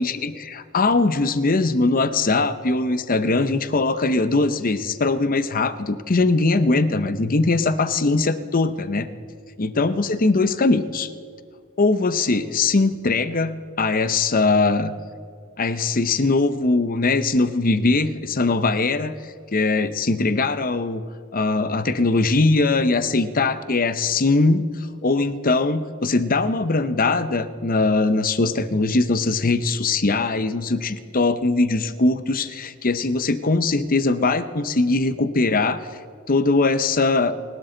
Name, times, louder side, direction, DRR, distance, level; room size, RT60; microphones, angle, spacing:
voice 1, 0.0-9.1 9.6-11.1 11.8-14.9 15.6-19.1 19.5-21.0 21.3-35.9 36.3-37.3, left 3 dB, 40° left, 12 dB, 0.8 m, -21 dB
29.0 x 12.5 x 3.9 m, 2.2 s
head